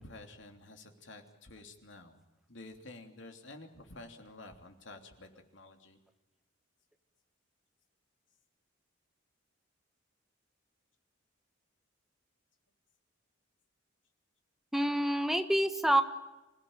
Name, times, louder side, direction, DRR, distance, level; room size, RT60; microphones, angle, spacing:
voice 1, 0.0-2.2 2.5-6.0, left 2 dB, 65° left, 5 dB, 3.1 m, -51 dB
voice 2, 14.7-16.0, right 1 dB, ahead, 8 dB, 1.2 m, -27 dB
27.0 x 16.5 x 8.9 m, 1.1 s
head